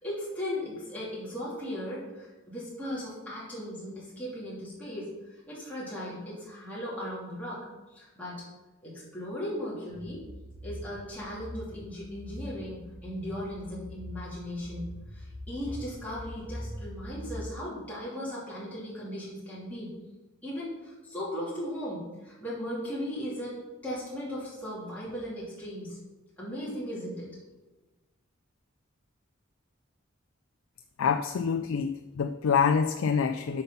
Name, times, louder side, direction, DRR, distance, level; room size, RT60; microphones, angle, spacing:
voice 1, 0.0-5.1 5.5-7.6 7.9-8.4 8.8-10.2 10.6-19.9 20.4-23.5 23.8-26.0 26.4-27.3, equal, 5° left, -9 dB, 2.6 m, -37 dB
sound 1, 9.9-17.5, equal, 15° right, 1.1 m, -43 dB
voice 2, 31.0-33.6, left 6 dB, 80° left, 6 dB, 0.4 m, -26 dB
7.8 x 5.6 x 5.6 m, 1.1 s
head